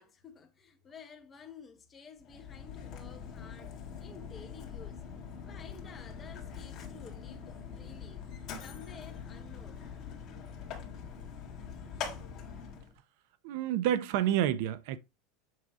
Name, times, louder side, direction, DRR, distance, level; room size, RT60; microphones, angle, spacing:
voice 1, 0.0-3.7 4.0-5.0 5.4-8.3 8.6-9.9, left 6 dB, 20° left, 1.0 m, -52 dB
Mechanisms, 2.2-12.9, left 6 dB, 35° left, 1.8 m, -43 dB
voice 2, 13.4-15.0, right 11 dB, 60° right, 0.6 m, -29 dB
7.5 x 2.7 x 4.7 m
supercardioid pair, 160°, 0 cm